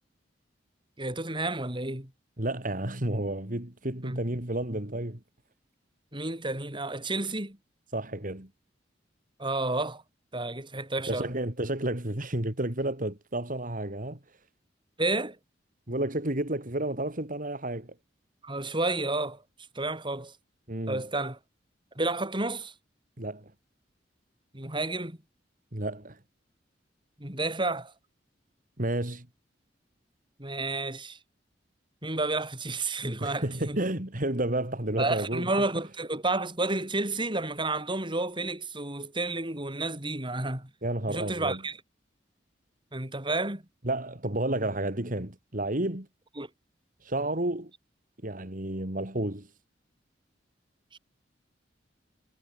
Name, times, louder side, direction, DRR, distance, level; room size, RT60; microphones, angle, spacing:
voice 1, 1.0-2.1 4.1-4.2 6.1-7.6 9.4-10.0 10.3-11.3 15.0-15.4 18.4-19.4 19.7-20.3 20.9-21.4 22.0-22.7 24.5-25.2 27.2-27.9 30.4-31.2 32.0-33.8 35.0-40.7 41.1-41.8 42.9-43.6 46.4-46.5 50.9-51.0, right 2 dB, 25° right, 5.9 m, -31 dB
voice 2, 2.4-5.2 7.9-8.5 11.1-14.2 15.9-17.9 20.7-21.0 23.2-23.5 25.7-26.2 28.8-29.3 33.2-35.5 40.8-41.6 43.8-46.1 47.0-47.7 48.2-49.5, right 1 dB, 50° right, 3.4 m, -31 dB
head